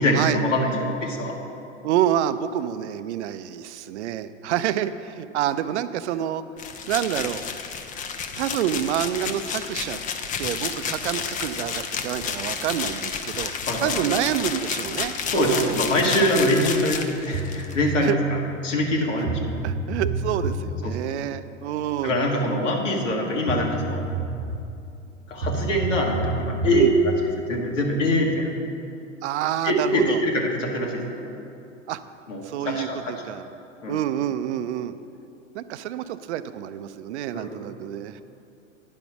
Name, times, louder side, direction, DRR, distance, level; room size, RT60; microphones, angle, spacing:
voice 1, 0.0-1.3 13.7-13.9 15.3-18.2 18.6-19.6 20.8-20.9 22.0-24.0 25.3-27.1 27.5-28.5 29.6-31.0 32.3-33.1 33.8-34.0 37.3-37.7, equal, 80° left, -1 dB, 1.6 m, -23 dB
voice 2, 1.8-6.4 6.9-7.4 8.4-10.0 10.4-13.5 13.8-15.8 18.0-18.2 19.2-19.3 19.6-22.2 26.7-26.9 29.2-30.2 31.9-32.0 32.4-33.5 33.9-34.9 35.5-38.2, right 11 dB, 65° right, 13 dB, 0.5 m, -27 dB
sound 1, 6.6-17.7, left 6 dB, 20° left, 0.5 m, -31 dB
sound 2, 17.3-17.9 18.9-19.0 19.3-21.0 23.1-23.2 23.5-24.7 25.4-27.1, right 2 dB, 90° right, 0.9 m, -29 dB
9.8 x 5.3 x 6.0 m, 2.7 s
hypercardioid pair, 95°, 37 cm